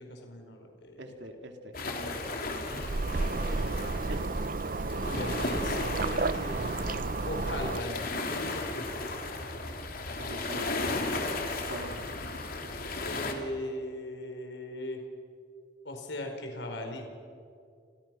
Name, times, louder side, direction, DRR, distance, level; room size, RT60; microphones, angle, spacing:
voice 1, 0.0-1.4 5.2-6.6 7.3-8.8 13.0-15.0 15.8-17.1, left 1 dB, 70° left, 3 dB, 4.7 m, -38 dB
voice 2, 1.0-2.0 2.9-3.8 4.1-4.2 4.5-5.0 10.2-11.2 11.7-12.1, right 1 dB, 70° right, 4 dB, 2.8 m, -44 dB
sound 1, 1.7-13.3, left 2 dB, 50° left, 3.3 m, -35 dB
sound 2, 2.7-7.8, right 3 dB, 50° right, 0.6 m, -32 dB
30.0 x 29.0 x 6.2 m, 2.4 s
head